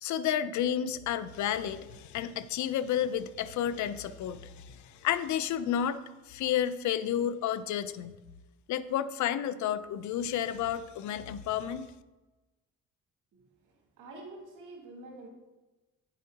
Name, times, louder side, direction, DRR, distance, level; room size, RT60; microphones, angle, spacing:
voice 1, 0.0-6.0 6.3-8.2 8.7-11.9, left 10 dB, 70° left, 15 dB, 0.5 m, -31 dB
voice 2, 13.3-15.3, right 2 dB, 85° right, -1 dB, 2.4 m, -48 dB
9.6 x 7.4 x 2.8 m, 1.1 s
cardioid pair, 90°, 30 cm